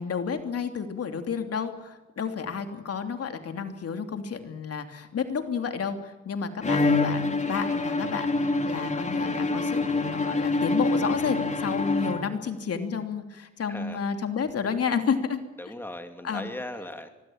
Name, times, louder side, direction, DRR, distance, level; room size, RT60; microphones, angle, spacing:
voice 1, 0.0-15.4 16.2-16.5, left 6 dB, 50° left, 6 dB, 3.1 m, -31 dB
Bowed string instrument, 6.6-12.6, left 3 dB, 25° left, 3.1 m, -26 dB
voice 2, 13.7-14.0 15.6-17.1, left 1 dB, 5° left, 6 dB, 2.8 m, -38 dB
24.5 x 21.0 x 8.9 m, 1.1 s
cardioid pair, 90°, 30 cm